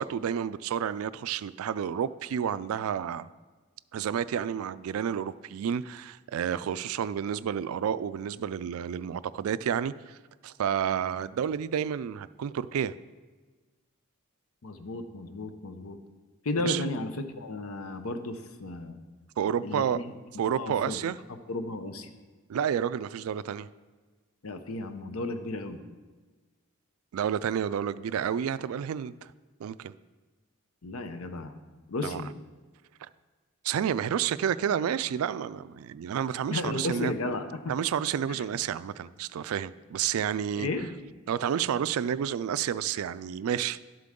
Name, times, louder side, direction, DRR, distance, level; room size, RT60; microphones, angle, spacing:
voice 1, 0.0-3.3 3.9-10.2 10.4-12.9 16.6-16.8 19.4-20.0 20.4-21.2 22.5-23.7 27.1-29.3 29.6-29.9 32.0-32.2 33.6-37.1 37.7-40.7 41.3-43.8, right 8 dB, 80° right, 16 dB, 0.3 m, -30 dB
voice 2, 14.6-16.0 16.4-19.0 19.6-20.0 20.6-21.0 21.5-22.1 24.4-25.8 30.8-31.5 31.9-32.3 36.5-37.7 38.3-38.4 40.5-40.9, left 2 dB, 80° left, 8 dB, 0.8 m, -34 dB
11.5 x 7.6 x 3.7 m, 1.3 s
head